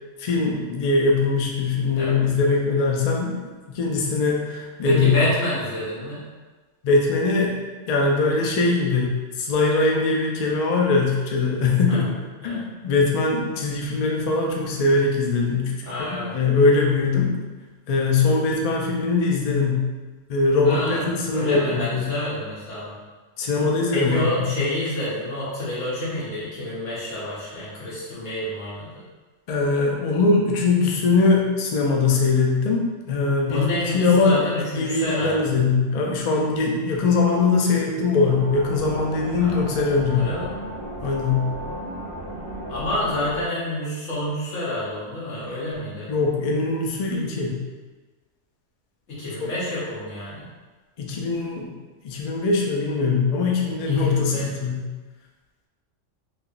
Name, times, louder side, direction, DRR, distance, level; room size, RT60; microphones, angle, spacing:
voice 1, 0.2-3.4 3.7-5.2 6.8-7.6 7.9-12.1 12.4-15.7 16.0-17.4 17.9-19.9 20.3-22.1 23.4-24.5 29.5-34.4 34.8-40.2 41.0-41.5 46.1-47.6 49.4-49.5 51.0-51.7 52.0-54.8, left 3 dB, 90° left, -1 dB, 0.3 m, -21 dB
voice 2, 4.8-6.2 11.9-12.0 12.4-12.6 15.8-16.3 20.6-21.0 21.3-23.0 23.9-29.0 33.5-35.5 39.4-39.7 40.1-40.4 42.7-46.1 49.1-50.5 54.0-54.4, left 1 dB, 75° left, -9 dB, 1.5 m, -28 dB
sound 1, 38.2-43.4, right 1 dB, 25° right, 1.1 m, -34 dB
3.4 x 2.8 x 2.5 m, 1.3 s
omnidirectional pair, 1.3 m